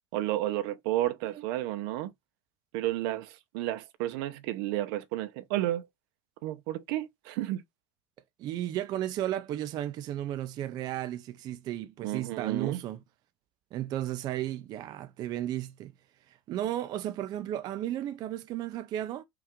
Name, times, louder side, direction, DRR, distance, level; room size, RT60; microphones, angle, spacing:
voice 1, 0.1-2.1 2.7-5.9 6.4-7.6 12.0-12.8, right 14 dB, 65° right, 0.7 m, -32 dB
voice 2, 8.4-13.0 13.7-15.9 16.3-19.2, right 12 dB, 30° right, 0.4 m, -34 dB
5.7 x 2.4 x 3.5 m
cardioid pair, 170°, 13 cm